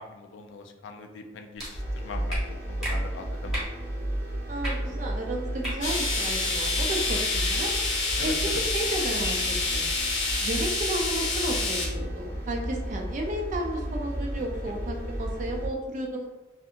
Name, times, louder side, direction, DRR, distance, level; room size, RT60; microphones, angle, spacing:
voice 1, 0.0-3.6 4.7-5.2 8.2-8.6, left 4 dB, 70° left, 4 dB, 0.3 m, -42 dB
sound 1, 1.6-1.7 2.3-2.4 2.8-2.9 3.5-3.7 4.6-4.7 5.6-5.7 6.1-6.3, right 1 dB, ahead, 1.1 m, -33 dB
sound 2, 1.7-15.7, right 1 dB, 15° left, 0.5 m, -33 dB
voice 2, 4.5-7.7 8.2-9.9 10.4-16.3, right 1 dB, 40° right, 1 dB, 0.4 m, -33 dB
sound 3, 5.8-11.9, left 3 dB, 85° left, 0.8 m, -28 dB
2.7 x 2.5 x 2.4 m, 1.1 s
head